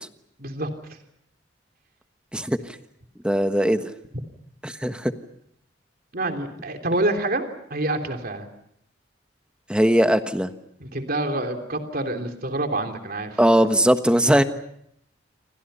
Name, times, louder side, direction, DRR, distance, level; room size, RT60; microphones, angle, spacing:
voice 1, 0.4-0.7 6.1-8.5 10.8-13.4, right 2 dB, 50° right, 5 dB, 3.3 m, -27 dB
voice 2, 3.2-3.9 4.6-5.1 9.7-10.5 13.4-14.4, equal, 5° right, 8 dB, 1.3 m, -19 dB
29.0 x 25.0 x 5.6 m, 0.73 s
head